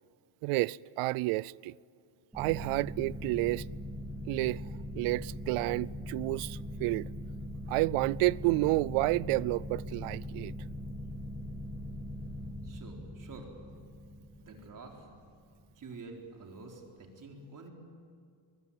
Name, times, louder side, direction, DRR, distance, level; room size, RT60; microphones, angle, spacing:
voice 1, 0.4-1.7 2.3-3.6 4.3-4.6 4.9-7.1 7.7-10.5, right 21 dB, 85° right, 0.6 m, -30 dB
sound 1, 2.3-15.6, left 1 dB, 5° right, 3.2 m, -41 dB
voice 2, 12.6-13.5 14.4-15.1 15.7-17.7, right 3 dB, 40° right, 4.2 m, -48 dB
23.5 x 21.0 x 9.1 m
cardioid pair, 130°, 49 cm